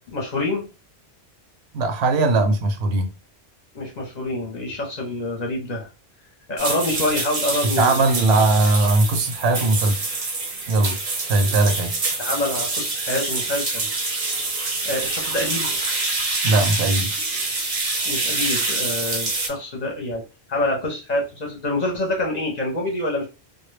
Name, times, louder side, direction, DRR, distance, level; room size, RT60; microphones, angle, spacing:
voice 1, 0.1-0.7 3.7-5.9 6.5-8.0 12.2-13.9 14.8-15.7 18.1-23.3, left 1 dB, 45° left, 0.7 m, -26 dB
voice 2, 1.7-3.1 7.6-10.0 10.7-11.9 16.4-17.1, right 2 dB, 80° right, 0.8 m, -19 dB
sound 1, 6.6-19.5, right 3 dB, 45° right, 0.5 m, -26 dB
2.1 x 2.1 x 3.1 m
omnidirectional pair, 1.1 m